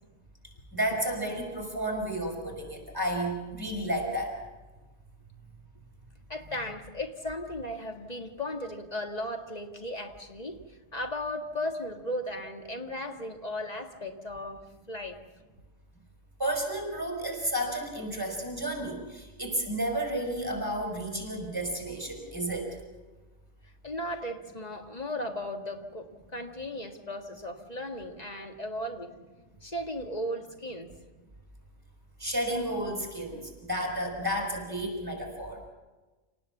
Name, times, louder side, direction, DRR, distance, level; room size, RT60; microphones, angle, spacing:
voice 1, 0.7-4.3 16.4-22.8 32.2-35.7, right 1 dB, 20° right, 2 dB, 5.2 m, -32 dB
voice 2, 6.3-15.2 23.8-29.1 29.6-30.9, left 1 dB, 35° left, 4 dB, 1.8 m, -36 dB
27.5 x 19.0 x 7.1 m, 1.2 s
omnidirectional pair, 1.2 m